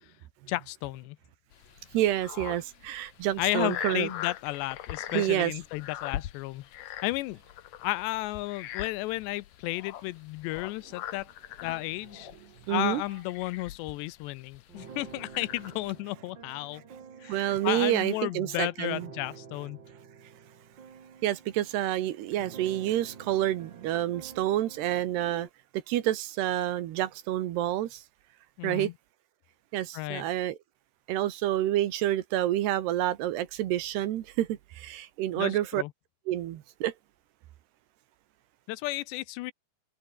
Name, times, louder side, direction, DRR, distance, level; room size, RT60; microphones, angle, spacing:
voice 1, 0.5-1.2 3.4-6.6 7.0-7.4 7.8-11.3 11.6-12.3 12.7-16.8 17.2-19.8 28.6-28.9 29.9-30.2 35.4-35.9 38.7-39.5, left 19 dB, 85° left, 2.8 m, -33 dB
sound 1, 1.5-16.0, left 12 dB, 65° left, 2.4 m, -42 dB
voice 2, 1.9-4.1 5.1-5.6 12.3-13.0 17.2-19.1 21.2-25.5 25.9-28.0 28.6-28.9 29.7-30.6 31.1-35.8 36.3-36.9, right 13 dB, 70° right, 3.3 m, -28 dB
sound 2, 14.7-25.5, right 6 dB, 40° right, 1.7 m, -50 dB
omnidirectional pair, 5.1 m